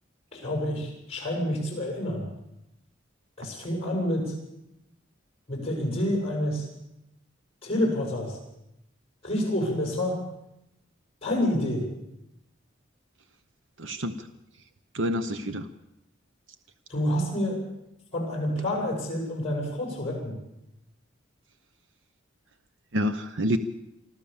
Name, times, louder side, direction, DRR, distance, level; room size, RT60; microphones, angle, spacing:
voice 1, 0.3-2.2 3.4-4.3 5.5-6.7 7.6-8.4 9.2-10.2 11.2-11.8 16.9-17.6 18.1-20.4, left 1 dB, 30° left, -1 dB, 8.0 m, -28 dB
voice 2, 13.8-14.3 14.9-15.7 22.9-23.6, equal, 75° right, 9 dB, 0.9 m, -28 dB
25.5 x 14.0 x 7.2 m, 0.88 s
head